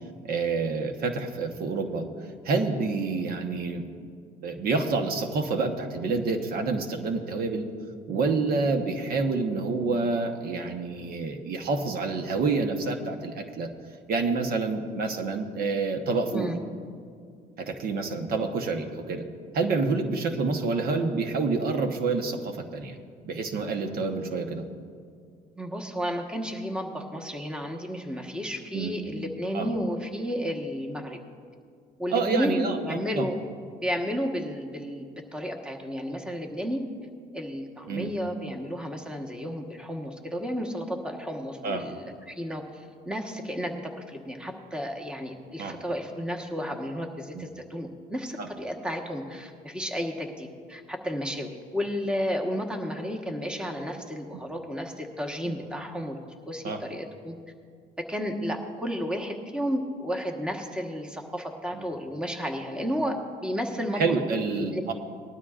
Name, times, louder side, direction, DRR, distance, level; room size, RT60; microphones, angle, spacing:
voice 1, 0.2-2.0 2.4-3.9 4.4-7.6 8.1-13.7 14.1-16.5 17.6-19.2 19.5-23.0 23.3-24.6 28.7-28.9 29.5-29.7 32.1-33.3 37.9-38.1 41.6-41.9 45.6-45.8 47.3-47.4 48.4-48.5 55.5-55.6 56.6-56.8 61.7-61.8 64.0-64.9, right 4 dB, 65° right, 5 dB, 1.2 m, -28 dB
voice 2, 25.6-31.2 32.0-33.4 33.8-36.8 37.3-57.3 58.0-64.0 64.5-64.8, equal, 5° right, 2 dB, 1.3 m, -32 dB
19.5 x 12.5 x 2.5 m, 2.2 s
cardioid pair, 110°, 17 cm